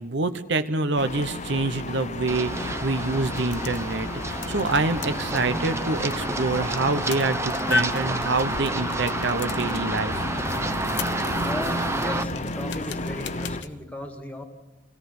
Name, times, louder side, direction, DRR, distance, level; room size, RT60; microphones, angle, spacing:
voice 1, 0.0-10.2, right 3 dB, 60° right, 9 dB, 0.9 m, -26 dB
sound 1, 1.0-13.6, left 2 dB, 35° left, 0.9 m, -33 dB
Run, 2.3-12.2, right 2 dB, 15° right, 0.8 m, -30 dB
sound 2, 3.2-13.7, left 4 dB, 60° left, 1.1 m, -37 dB
voice 2, 11.4-14.4, left 1 dB, 10° left, 4 dB, 2.0 m, -36 dB
25.0 x 17.5 x 6.6 m, 1.1 s
head